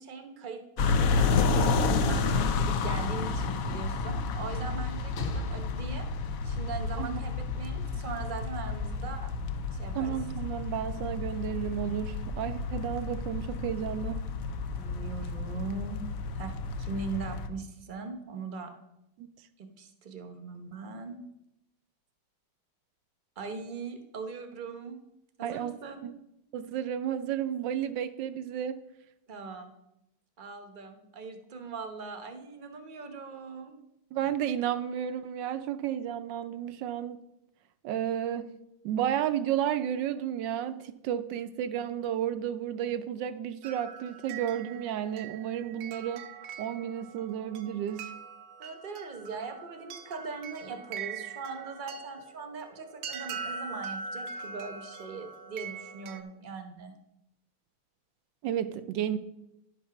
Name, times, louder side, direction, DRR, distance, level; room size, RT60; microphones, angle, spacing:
voice 1, 0.0-1.8 2.1-6.1 6.4-9.3 9.7-10.2 14.8-16.0 16.3-18.7 19.6-21.2 23.4-25.0 25.4-26.1 29.3-29.7 30.4-33.7 48.6-56.9, right 4 dB, 40° right, 6 dB, 0.7 m, -40 dB
sound 1, 0.8-17.5, left 4 dB, 65° left, 0.8 m, -30 dB
Sliding door / Slam, 2.1-7.1 8.0-8.1, left 3 dB, 85° left, 2.0 m, -40 dB
voice 2, 9.9-14.2 19.2-19.3 25.4-25.8 26.0-26.1 26.5-28.8 34.1-37.2 37.8-38.5 38.8-46.2 46.6-48.1 58.4-59.2, right 10 dB, 75° right, 12 dB, 1.1 m, -32 dB
sound 2, 43.6-56.2, right 5 dB, 90° right, 1.6 m, -42 dB
11.0 x 5.4 x 5.8 m, 0.85 s
omnidirectional pair, 2.2 m